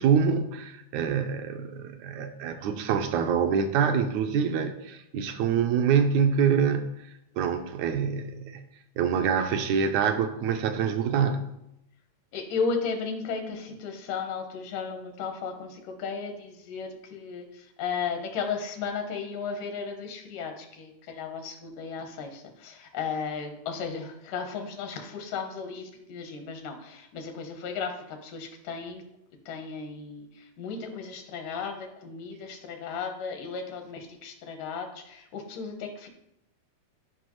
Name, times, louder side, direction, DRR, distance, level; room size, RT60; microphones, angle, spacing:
voice 1, 0.0-6.9 7.4-8.6 9.0-11.5, right 7 dB, 80° right, 7 dB, 1.8 m, -25 dB
voice 2, 12.3-29.0 29.5-36.1, left 5 dB, 80° left, 5 dB, 2.6 m, -35 dB
11.5 x 5.5 x 3.1 m, 0.83 s
omnidirectional pair, 3.6 m